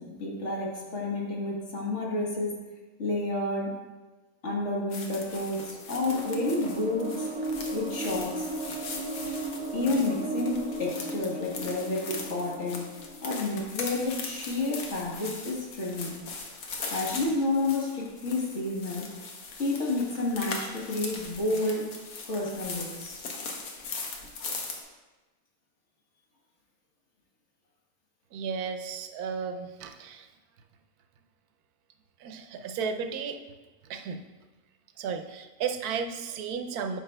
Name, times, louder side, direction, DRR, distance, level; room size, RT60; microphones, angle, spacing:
voice 1, 0.0-2.5 3.0-3.7 4.4-7.3 7.7-8.5 9.7-12.9 13.2-16.1 16.9-19.1 19.6-21.9 22.3-23.2, left 2 dB, 55° left, -3 dB, 1.6 m, -30 dB
sound 1, 4.9-24.8, left 4 dB, 90° left, 1.4 m, -40 dB
sound 2, 5.9-14.1, right 2 dB, 70° right, 1.3 m, -36 dB
voice 2, 28.3-30.3 32.2-33.4 33.9-34.2 35.0-37.0, right 6 dB, 90° right, 6 dB, 1.1 m, -34 dB
12.0 x 4.9 x 2.2 m, 1.2 s
omnidirectional pair, 1.6 m